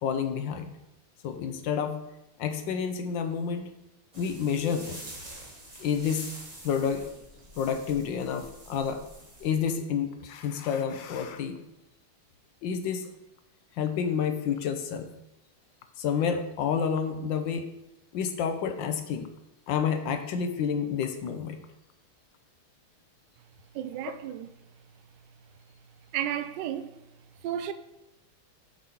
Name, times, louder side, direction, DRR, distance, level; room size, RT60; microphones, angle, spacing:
voice 1, 0.0-0.8 1.2-2.0 2.4-3.7 4.1-5.0 5.8-6.3 6.6-7.1 7.6-9.0 9.4-11.6 12.6-13.1 13.8-15.1 16.0-17.7 18.1-19.3 19.7-21.6, left 7 dB, 70° left, 1.3 m, -29 dB
sound 1, 4.1-9.8, right 1 dB, 25° right, 1.1 m, -46 dB
voice 2, 23.7-24.5 26.1-26.9 27.4-27.7, right 10 dB, 80° right, 1.0 m, -32 dB
7.5 x 5.2 x 4.4 m
omnidirectional pair, 2.4 m